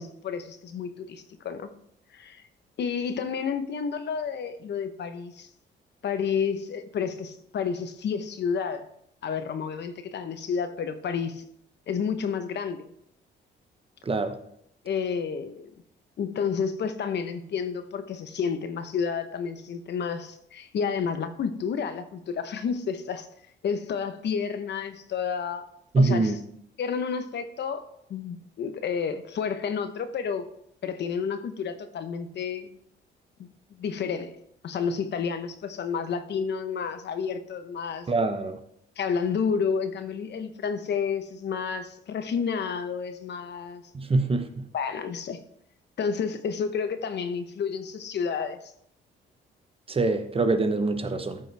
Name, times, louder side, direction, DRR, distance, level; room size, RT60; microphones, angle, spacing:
voice 1, 0.0-1.7 2.1-2.4 2.8-5.5 6.0-8.9 9.2-11.4 11.9-12.9 14.8-15.7 16.2-23.3 23.6-25.6 26.0-26.3 26.8-27.8 28.1-30.4 30.8-32.8 33.4-33.5 33.8-34.3 34.6-38.1 39.0-43.8 44.7-45.4 46.0-48.6, left 6 dB, 60° left, 0.9 m, -30 dB
voice 2, 14.1-14.4 25.9-26.4 38.1-38.6 43.9-44.7 49.9-51.4, right 3 dB, 30° right, 1.0 m, -24 dB
13.5 x 5.4 x 3.4 m
cardioid pair, 90°, 20 cm